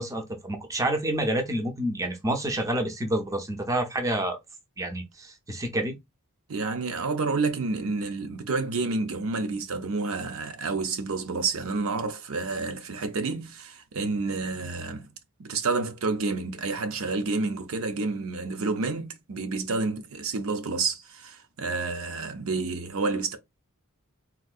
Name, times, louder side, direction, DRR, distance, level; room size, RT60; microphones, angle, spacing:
voice 1, 0.0-4.4 4.8-6.0, right 1 dB, 15° right, 0.6 m, -28 dB
voice 2, 6.5-15.1 15.4-23.4, right 3 dB, 70° right, 0.6 m, -29 dB
3.7 x 2.6 x 2.3 m
head